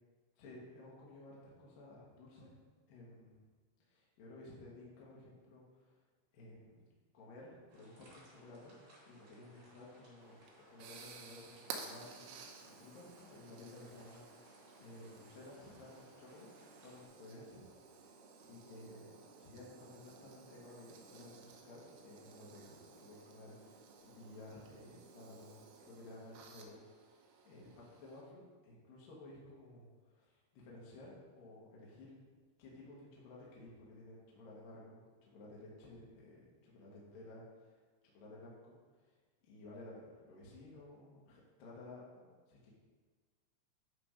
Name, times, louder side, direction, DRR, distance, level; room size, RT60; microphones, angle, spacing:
voice 1, 0.4-2.6 2.9-3.4 3.9-6.0 6.3-6.9 7.1-8.8 9.1-16.5 16.8-18.2 18.4-19.1 19.4-26.8 27.4-32.1 32.6-37.8 38.0-39.2 39.4-42.7, left 2 dB, 65° left, -5 dB, 2.4 m, -55 dB
sound 1, 7.7-17.1, equal, 60° right, 4.0 m, -64 dB
sound 2, 10.2-28.2, right 5 dB, 85° right, 3.1 m, -55 dB
9.6 x 3.4 x 5.0 m, 1.5 s
omnidirectional pair, 5.4 m